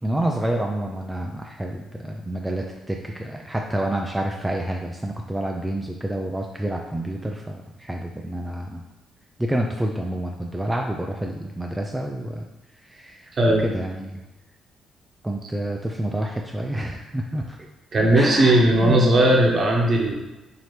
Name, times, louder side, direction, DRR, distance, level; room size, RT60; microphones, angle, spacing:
voice 1, 0.0-8.8 9.4-12.4 12.8-14.2 15.2-17.7 18.1-19.0, right 1 dB, 10° right, 1 dB, 0.3 m, -28 dB
voice 2, 17.9-20.1, right 1 dB, 45° right, -1 dB, 0.9 m, -17 dB
4.2 x 2.9 x 3.2 m, 1.1 s
cardioid pair, 90°, 0 cm